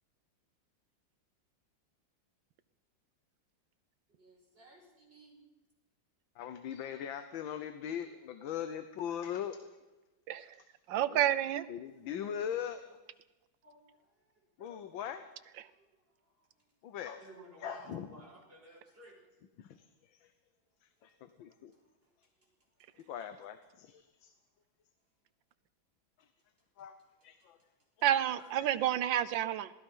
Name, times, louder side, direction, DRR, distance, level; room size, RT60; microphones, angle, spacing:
voice 1, 4.1-5.4 13.6-14.9 15.6-16.7 17.0-19.3 20.7-20.8 21.1-21.2 21.7-23.4 24.2-24.4, right 1 dB, 30° right, -1 dB, 5.6 m, -58 dB
voice 2, 6.4-9.6 11.1-11.2 11.7-12.8 14.6-15.2 16.8-17.2 17.6-18.1 19.6-20.3 21.0-21.7 23.1-24.3 26.2-26.3 26.8-26.9 27.2-27.6 28.6-28.7, left 9 dB, 85° left, 10 dB, 1.7 m, -40 dB
voice 3, 10.9-11.7 15.6-15.7 28.0-29.7, right 11 dB, 75° right, 14 dB, 1.5 m, -30 dB
26.5 x 18.5 x 5.6 m, 1.1 s
omnidirectional pair, 2.1 m